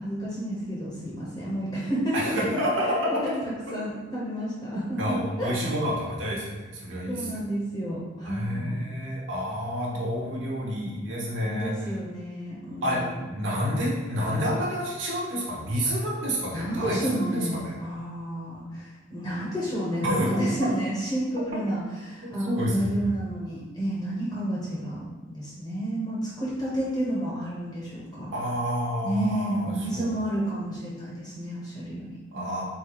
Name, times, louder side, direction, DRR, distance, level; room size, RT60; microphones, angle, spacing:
voice 1, 0.0-3.3 3.7-5.6 7.1-8.8 11.4-13.2 16.5-28.3 29.0-32.6, right 1 dB, 20° left, -7 dB, 0.8 m, -31 dB
voice 2, 2.1-3.3 5.0-7.3 8.2-11.9 12.8-17.8 20.0-20.3 22.4-22.9 28.3-30.1 32.3-32.6, equal, 75° right, -4 dB, 1.1 m, -29 dB
3.9 x 2.6 x 4.6 m, 1.2 s
head